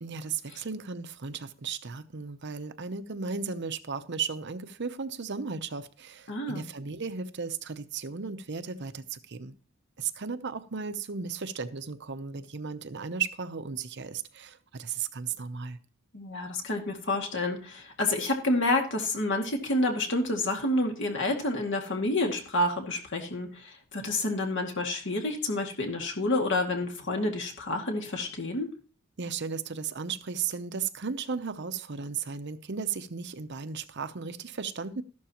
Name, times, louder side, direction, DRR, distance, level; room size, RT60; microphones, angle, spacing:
voice 1, 0.0-9.5 10.0-15.8 29.2-35.0, right 5 dB, 55° right, 11 dB, 0.8 m, -35 dB
voice 2, 6.3-6.7 16.1-28.7, left 2 dB, 60° left, 2 dB, 2.2 m, -29 dB
13.5 x 12.0 x 3.0 m, 0.38 s
head